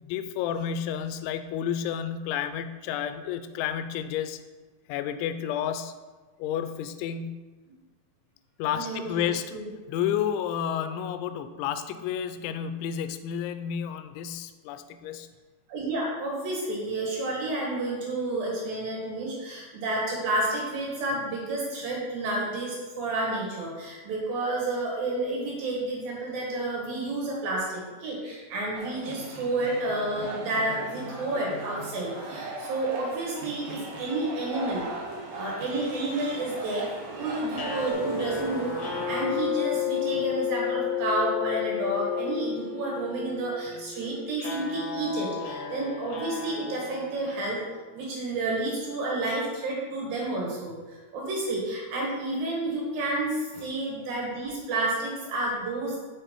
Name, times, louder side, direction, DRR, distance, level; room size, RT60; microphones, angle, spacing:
voice 1, 0.0-4.4 4.9-5.9 6.4-7.4 8.6-9.6 9.9-15.3 43.7-43.8, left 9 dB, 85° left, 10 dB, 2.9 m, -31 dB
voice 2, 8.8-9.2 9.5-9.6 15.7-34.9 35.4-36.9 37.2-47.6 47.9-56.0, right 2 dB, 60° right, -3 dB, 3.2 m, -30 dB
sound 1, 28.7-37.9, right 2 dB, 75° right, 1.9 m, -39 dB
sound 2, 32.6-39.4, right 1 dB, 20° right, 1.7 m, -45 dB
sound 3, 37.5-47.7, left 7 dB, 70° left, 2.4 m, -32 dB
6.8 x 6.3 x 4.5 m, 1.3 s
omnidirectional pair, 5.3 m